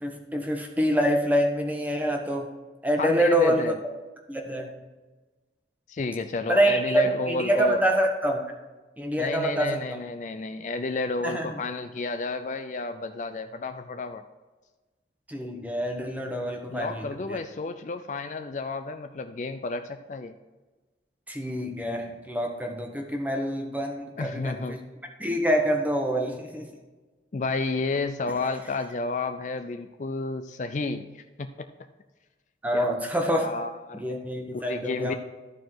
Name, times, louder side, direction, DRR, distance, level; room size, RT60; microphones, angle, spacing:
voice 1, 0.0-2.5 2.8-3.7 4.3-4.7 6.5-8.4 9.0-9.8 11.2-11.5 15.3-17.4 21.3-24.8 25.2-26.7 32.6-33.5 34.0-35.1, equal, 10° right, 2 dB, 1.0 m, -26 dB
voice 2, 3.0-3.8 5.9-7.8 9.2-14.2 16.7-20.3 24.2-24.8 27.3-31.7 32.7-32.8 33.3-34.0 34.5-35.1, left 3 dB, 40° left, 8 dB, 0.4 m, -31 dB
13.0 x 4.6 x 4.5 m, 1.3 s
head